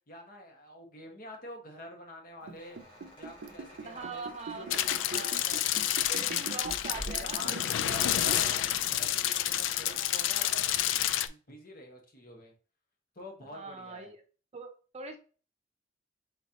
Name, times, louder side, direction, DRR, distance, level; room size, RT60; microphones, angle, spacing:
voice 1, 0.1-2.8 3.2-4.2 4.5-6.0 7.1-8.4 9.0-10.6 11.2-12.5 13.1-14.1, left 1 dB, 50° left, 2 dB, 1.2 m, -47 dB
sound 1, 2.2-7.4, equal, 30° left, 1.9 m, -49 dB
Liquid, 2.4-8.6 8.9-9.0, right 4 dB, 75° right, 0.4 m, -42 dB
voice 2, 3.8-5.4 6.1-8.0 8.3-8.6 9.9-10.6 13.5-14.2 14.5-15.2, right 4 dB, 35° right, 5 dB, 0.6 m, -43 dB
sound 2, 4.7-11.3, left 12 dB, 80° left, 0.3 m, -29 dB
4.2 x 3.8 x 2.8 m, 0.37 s
head